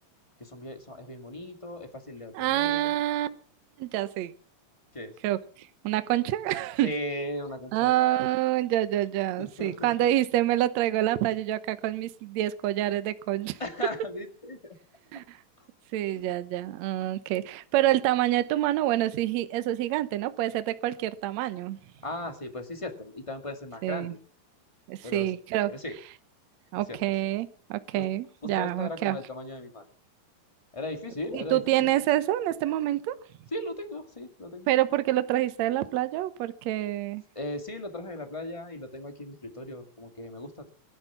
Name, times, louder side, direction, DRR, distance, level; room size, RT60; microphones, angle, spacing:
voice 1, 0.4-2.9 4.9-5.1 6.8-8.2 9.4-9.9 13.6-14.8 15.6-15.7 16.1-16.3 22.0-24.2 25.0-25.3 25.7-25.9 26.9-27.0 28.0-28.1 28.4-29.9 30.7-31.9 33.5-34.7 37.3-40.7, left 1 dB, 15° left, 1.1 m, -37 dB
voice 2, 2.3-3.3 3.8-4.3 5.2-6.9 7.7-13.6 15.1-15.4 15.9-21.8 23.8-24.1 24.9-25.7 26.7-29.2 31.3-33.2 34.7-37.2, right 14 dB, 70° right, 1.8 m, -27 dB
20.5 x 12.0 x 5.9 m
omnidirectional pair, 4.1 m